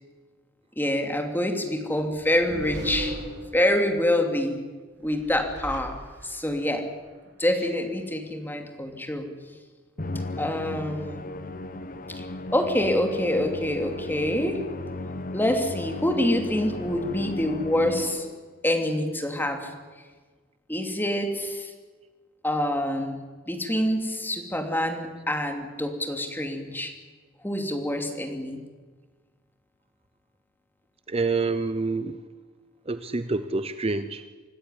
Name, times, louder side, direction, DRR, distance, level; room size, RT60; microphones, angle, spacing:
voice 1, 0.8-3.2 3.5-4.6 5.0-6.8 7.4-9.3 10.4-11.3 12.2-12.3 12.5-14.6 15.3-18.3 18.6-19.7 20.7-21.7 22.4-23.2 23.5-26.9 27.4-28.6, left 1 dB, 10° left, 4 dB, 2.8 m, -26 dB
sound 1, 2.1-4.0 5.0-6.5, equal, 55° right, 3.8 m, -37 dB
Musical instrument, 10.0-18.5, left 2 dB, 45° left, 1.2 m, -36 dB
voice 2, 31.1-32.2 32.9-34.2, right 3 dB, 30° right, 11 dB, 0.8 m, -27 dB
25.5 x 13.5 x 10.0 m, 1.4 s
head